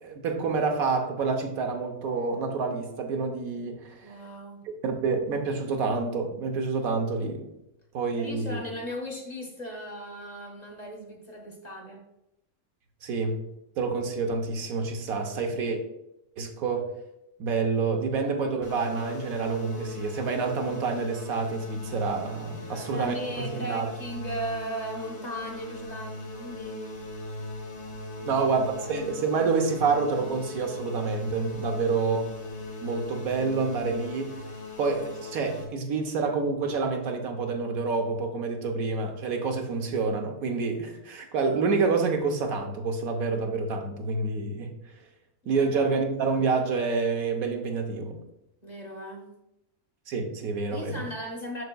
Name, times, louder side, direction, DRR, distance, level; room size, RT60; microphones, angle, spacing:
voice 1, 0.0-4.1 4.8-7.5 7.9-8.6 13.0-13.4 13.8-15.8 16.4-16.9 17.4-23.9 28.3-32.2 32.8-34.3 34.8-44.7 45.5-48.2 50.1-51.0, right 4 dB, 70° right, 4 dB, 1.2 m, -28 dB
voice 2, 4.0-4.6 8.2-12.0 22.7-27.0 28.2-28.5 28.8-29.1 31.7-32.0 45.5-45.7 48.6-49.3 50.7-51.6, equal, 35° left, 1 dB, 1.0 m, -37 dB
sound 1, 18.6-35.7, left 2 dB, 65° left, 1.6 m, -39 dB
6.6 x 6.5 x 2.2 m, 0.87 s
omnidirectional pair, 1.6 m